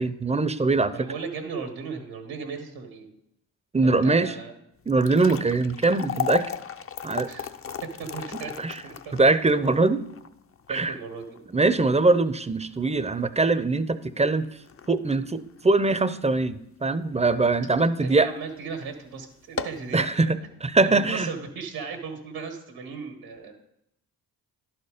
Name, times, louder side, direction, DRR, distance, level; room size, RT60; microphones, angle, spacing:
voice 1, 0.0-0.9 3.7-4.3 4.9-6.5 7.0-7.3 8.6-8.8 9.1-10.0 10.7-10.9 11.5-14.5 14.9-18.3 19.9-21.3, right 3 dB, 15° right, 14 dB, 0.5 m, -22 dB
voice 2, 0.9-3.1 3.8-4.5 7.2-7.5 8.0-9.0 10.7-11.4 17.8-20.1 20.8-23.5, right 5 dB, 85° right, 4 dB, 1.4 m, -36 dB
sound 1, 4.8-17.1 17.5-17.6 18.3-18.5 18.8-18.9 19.4-19.9, left 8 dB, 30° left, 0.5 m, -36 dB
11.5 x 4.3 x 5.0 m, 0.78 s
supercardioid pair, 45°, 45 cm